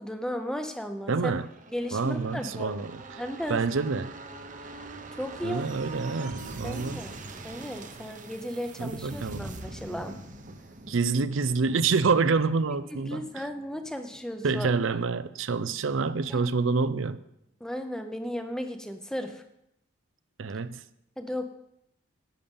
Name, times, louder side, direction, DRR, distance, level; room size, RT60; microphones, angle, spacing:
voice 1, 0.0-1.3 1.7-2.8 3.2-3.7 5.1-5.6 6.6-7.1 7.4-10.1 12.9-14.7 16.3-16.4 17.6-19.3 21.2-21.5, equal, 5° left, 6 dB, 0.7 m, -35 dB
voice 2, 1.1-1.5 1.9-3.2 3.5-4.1 5.4-7.0 8.8-9.4 10.9-13.5 14.4-17.2 20.4-20.8, right 4 dB, 70° right, 13 dB, 0.5 m, -27 dB
sound 1, 1.4-14.8 15.1-15.2, right 2 dB, 40° right, 0.9 m, -43 dB
10.5 x 8.6 x 5.5 m, 0.81 s
head